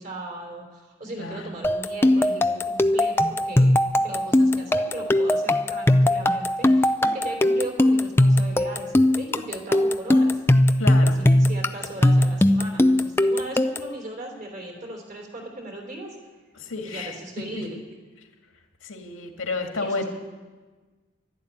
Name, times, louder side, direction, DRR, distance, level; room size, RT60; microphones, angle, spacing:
voice 1, 0.0-10.4 11.0-16.2 16.8-17.8 19.8-20.1, right 1 dB, 40° right, 2 dB, 3.5 m, -37 dB
sound 1, 1.6-14.0, left 1 dB, 10° left, 0.4 m, -20 dB
voice 2, 10.8-11.2 16.5-17.2 17.5-17.6 18.8-20.0, left 3 dB, 85° left, 3 dB, 2.1 m, -31 dB
12.5 x 11.5 x 9.8 m, 1.3 s
head